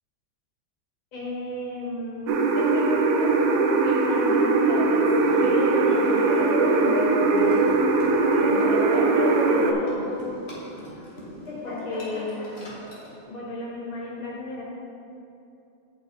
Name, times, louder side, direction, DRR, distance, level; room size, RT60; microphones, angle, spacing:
voice 1, 1.1-3.4 3.7-7.9 8.4-10.2 11.6-12.7 13.3-14.6, left 2 dB, 80° left, -4 dB, 2.3 m, -33 dB
sound 1, 2.3-9.7, right 3 dB, 75° right, 0.8 m, -21 dB
Laughter, 5.0-13.1, left 1 dB, 35° left, 1.6 m, -34 dB
8.0 x 5.5 x 4.4 m, 2.7 s
omnidirectional pair, 2.2 m